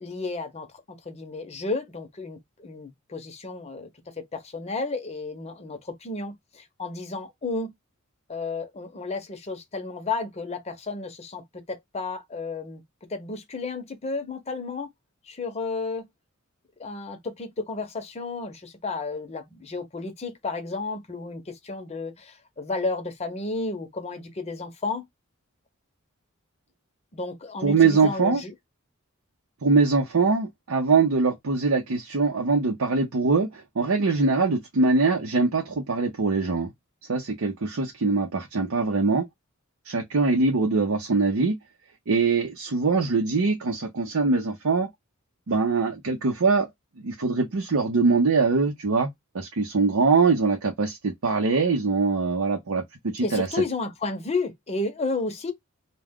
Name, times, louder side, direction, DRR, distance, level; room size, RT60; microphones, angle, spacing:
voice 1, 0.0-3.9 4.2-7.7 8.3-12.8 13.1-14.9 15.3-16.1 16.8-25.1 27.1-28.5 53.2-55.5, left 3 dB, 30° left, 0.7 m, -32 dB
voice 2, 27.6-28.4 29.6-36.7 37.1-39.2 39.9-41.6 42.1-44.9 45.5-46.7 47.0-49.1 49.3-53.5, right 4 dB, 80° right, 0.7 m, -23 dB
2.3 x 2.2 x 3.5 m
head